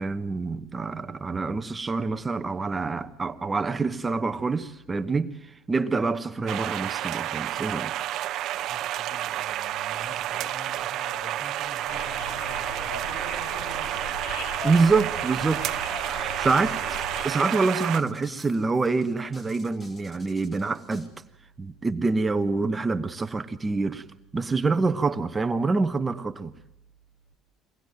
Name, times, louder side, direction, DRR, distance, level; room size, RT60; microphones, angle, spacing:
voice 1, 0.0-7.9 14.6-15.6 15.9-17.0 17.2-21.1 21.6-24.0 24.3-26.5, right 4 dB, 15° right, 1.0 m, -26 dB
sound 1, 6.5-18.0, right 13 dB, 55° right, 0.8 m, -30 dB
voice 2, 8.6-14.3 18.2-18.4 24.8-25.0, left 2 dB, 65° left, 5.9 m, -46 dB
sound 2, 11.9-17.3, left 2 dB, 80° left, 3.9 m, -38 dB
sound 3, 16.0-21.1, left 1 dB, 20° left, 4.5 m, -52 dB
23.5 x 19.0 x 9.2 m
cardioid pair, 145°, 0 cm